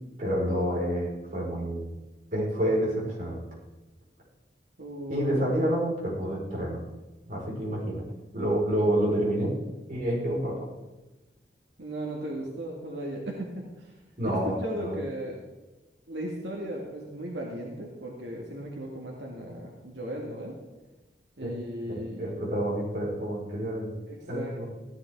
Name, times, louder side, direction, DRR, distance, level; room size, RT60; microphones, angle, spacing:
voice 1, 0.2-1.9 2.3-3.4 5.1-6.8 7.3-8.0 8.3-9.6 9.9-10.7 14.2-15.0 21.4-21.5 21.8-23.9 24.3-24.6, right 1 dB, 45° right, -5 dB, 4.8 m, -28 dB
voice 2, 4.8-5.3 11.8-13.5 13.8-13.9 14.2-15.4 16.1-20.6 21.4-22.5 24.1-24.6, right 1 dB, 90° right, -1 dB, 2.0 m, -36 dB
16.5 x 11.5 x 3.6 m, 1.1 s
head